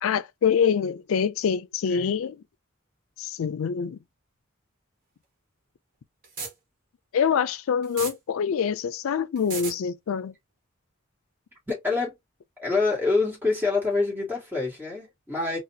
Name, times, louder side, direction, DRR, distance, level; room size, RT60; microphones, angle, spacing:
voice 1, 0.0-2.4 3.2-4.0 7.1-10.3, left 7 dB, 85° left, 0.4 m, -25 dB
sound 1, 6.2-6.5 7.8-8.1 9.4-9.7, right 4 dB, 40° right, 1.3 m, -33 dB
voice 2, 11.7-12.1 12.6-15.6, left 3 dB, 10° right, 1.8 m, -26 dB
4.0 x 2.4 x 2.7 m
head